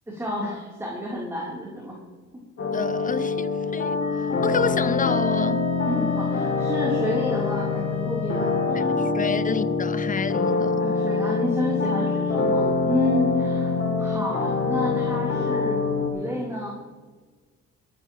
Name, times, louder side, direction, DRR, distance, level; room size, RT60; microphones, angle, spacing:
voice 1, 0.1-2.0 5.8-9.0 10.5-16.7, left 1 dB, 10° right, 3.3 m, -30 dB
sound 1, 2.6-16.1, left 4 dB, 45° left, 2.7 m, -25 dB
voice 2, 2.7-5.7 8.7-10.9, left 5 dB, 25° left, 0.7 m, -29 dB
Wind instrument woodwind instrument, 4.0-8.8, left 3 dB, 65° left, 2.6 m, -40 dB
22.0 x 10.5 x 3.0 m
cardioid pair, 90°, 30 cm